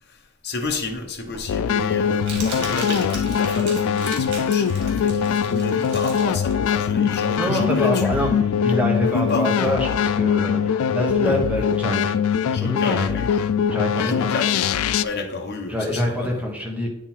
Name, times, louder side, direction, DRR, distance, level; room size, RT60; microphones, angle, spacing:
voice 1, 0.0-8.6 9.1-9.5 11.2-11.4 12.5-13.4 13.9-16.4, left 3 dB, 50° left, 3 dB, 1.0 m, -31 dB
Crumpling crinkling, 0.7-7.7, right 2 dB, 55° right, 2.3 m, -36 dB
sound 1, 1.5-15.0, left 7 dB, 80° left, 0.3 m, -22 dB
voice 2, 7.0-8.3 8.6-12.1 12.5-13.1 13.7-14.3 15.7-16.9, left 1 dB, 5° right, -1 dB, 1.2 m, -25 dB
8.8 x 3.8 x 4.4 m, 0.86 s
head